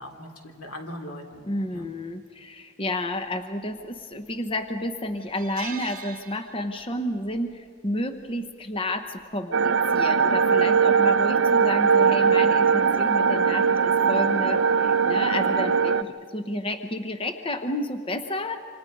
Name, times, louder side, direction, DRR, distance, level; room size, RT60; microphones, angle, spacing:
voice 1, 0.0-1.5 1.7-1.9 15.2-15.6, left 1 dB, 85° left, 2 dB, 3.2 m, -40 dB
voice 2, 1.4-18.6, left 1 dB, 25° left, 7 dB, 0.7 m, -31 dB
sound 1, 3.8-4.3 4.7-4.8 5.2-7.0 7.3-7.5 8.8-9.1, right 8 dB, 40° right, 1.8 m, -42 dB
sound 2, 9.5-16.0, right 6 dB, 55° right, 0.5 m, -20 dB
27.5 x 26.0 x 5.3 m, 2.2 s
head